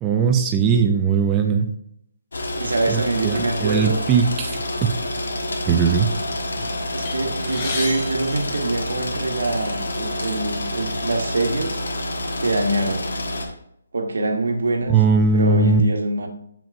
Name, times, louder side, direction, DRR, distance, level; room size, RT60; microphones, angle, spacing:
voice 1, 0.0-1.7 2.9-5.0 5.7-6.1 14.9-15.8, right 5 dB, 10° right, 3 dB, 0.3 m, -19 dB
sound 1, 2.3-13.5, left 1 dB, 75° left, 1.4 m, -28 dB
voice 2, 2.6-4.0 6.9-11.8 12.4-13.1 13.9-15.0 15.3-16.3, right 2 dB, 75° right, 4 dB, 1.4 m, -24 dB
sound 2, 7.0-9.4 10.2-10.3 10.7-10.8 11.7-11.9 12.3-13.5, left 3 dB, 20° left, 0.7 m, -34 dB
7.0 x 5.8 x 2.6 m, 0.73 s
hypercardioid pair, 180°, 0 cm